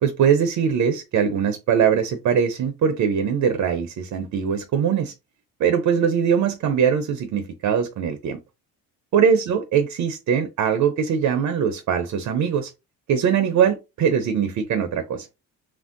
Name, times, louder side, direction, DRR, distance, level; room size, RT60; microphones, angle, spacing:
voice 1, 0.0-5.1 5.6-8.4 9.1-12.7 13.1-15.3, right 7 dB, 55° right, 0.6 m, -21 dB
3.1 x 2.6 x 2.5 m
supercardioid pair, 80°, 36 cm